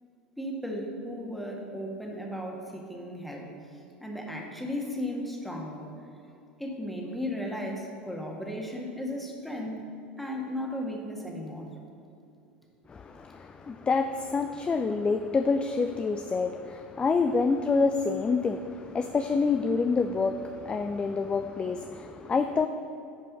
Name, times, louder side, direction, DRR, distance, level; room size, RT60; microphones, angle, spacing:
voice 1, 0.4-3.5 4.0-5.9 6.6-9.8 10.2-11.7, left 1 dB, ahead, 0 dB, 1.6 m, -35 dB
voice 2, 12.9-22.7, left 4 dB, 15° left, 8 dB, 0.4 m, -27 dB
10.5 x 5.3 x 5.4 m, 2.6 s
figure-of-eight pair, 75°, 6 cm